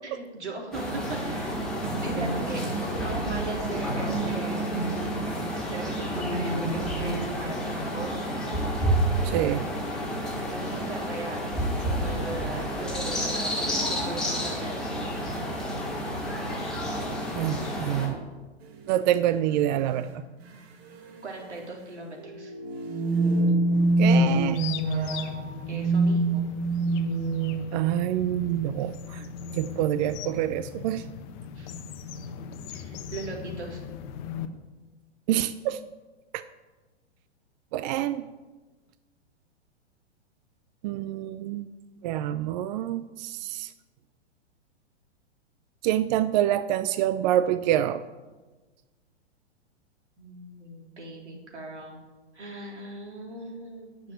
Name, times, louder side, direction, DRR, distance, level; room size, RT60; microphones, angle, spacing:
voice 1, 0.0-4.8 5.5-8.3 10.5-15.0 21.2-22.5 25.1-25.2 25.7-26.4 31.6-31.7 32.7-33.8 50.2-52.0 52.3-54.1, right 2 dB, 85° right, -1 dB, 3.8 m, -39 dB
sound 1, 0.7-18.1, right 1 dB, ahead, 4.6 m, -29 dB
voice 2, 9.2-9.7 17.3-18.1 18.9-20.1 24.0-24.6 27.7-29.2 29.5-31.0 35.3-35.8 36.3-36.4 37.7-38.2 40.8-41.7 42.0-43.7 45.8-48.0, right 12 dB, 40° right, 13 dB, 0.5 m, -26 dB
sound 2, 18.7-18.8 19.8-20.1 20.4-20.5 20.9-21.2 22.2-27.9, right 2 dB, 65° right, 2.0 m, -25 dB
sound 3, 23.7-34.5, left 7 dB, 40° left, 1.1 m, -40 dB
9.7 x 7.0 x 9.1 m, 1.2 s
hypercardioid pair, 115°, 34 cm